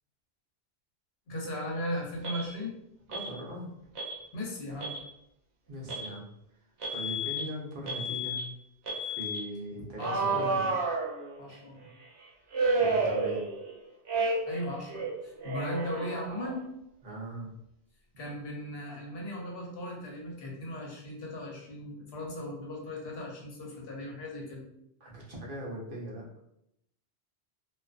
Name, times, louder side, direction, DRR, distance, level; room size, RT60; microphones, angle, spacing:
voice 1, 1.3-2.8 4.3-4.9 9.8-10.6 11.4-11.8 14.5-16.7 18.2-24.6, left 1 dB, 65° left, -2 dB, 0.9 m, -37 dB
Alarm, 2.2-2.5 3.1-3.3 4.0-4.2 4.7-5.0 5.9-6.1 6.8-7.4 7.9-8.4 8.9-9.4 10.0-11.5 12.5-13.7 14.1-14.6 14.9-16.6, right 2 dB, 80° right, 0.9 m, -31 dB
voice 2, 3.1-3.7 5.7-6.2 6.9-8.5 9.0-10.7 11.8-11.9 12.8-13.4 17.0-17.5 25.0-26.2, right 1 dB, 55° right, -3 dB, 0.9 m, -40 dB
2.4 x 2.4 x 2.4 m, 0.78 s
omnidirectional pair, 1.1 m